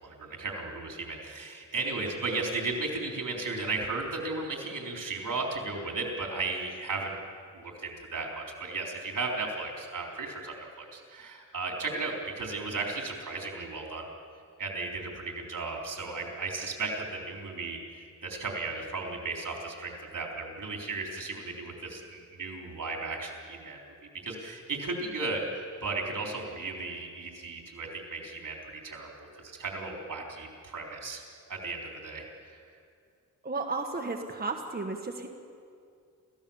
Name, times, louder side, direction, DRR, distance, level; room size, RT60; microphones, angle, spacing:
voice 1, 0.0-7.2 7.5-14.1 14.6-17.8 18.2-23.8 24.2-31.2 31.5-32.6, right 3 dB, 80° right, 0 dB, 4.0 m, -35 dB
voice 2, 33.4-35.3, right 3 dB, 30° right, 3 dB, 1.5 m, -33 dB
28.5 x 15.5 x 7.2 m, 2.3 s
wide cardioid pair, 105°, 32 cm